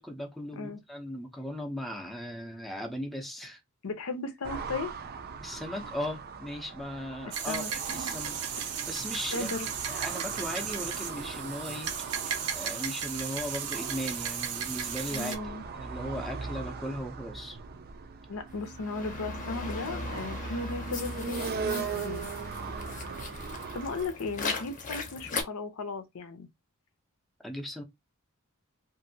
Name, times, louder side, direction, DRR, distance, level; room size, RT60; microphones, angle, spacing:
voice 1, 0.0-3.6 5.4-7.6 7.9-8.4 8.8-11.9 12.2-15.3 15.8-17.6 27.4-27.8, equal, ahead, 0.6 m, -37 dB
voice 2, 3.8-5.0 7.3-7.7 9.3-9.7 15.1-15.6 18.3-22.3 23.7-26.5, left 3 dB, 70° left, 0.6 m, -36 dB
sound 1, 4.4-24.1, right 5 dB, 45° right, 0.4 m, -40 dB
sound 2, 7.3-15.4, right 7 dB, 80° right, 0.7 m, -35 dB
sound 3, 18.5-25.4, left 3 dB, 35° left, 0.7 m, -38 dB
2.9 x 2.6 x 2.7 m
head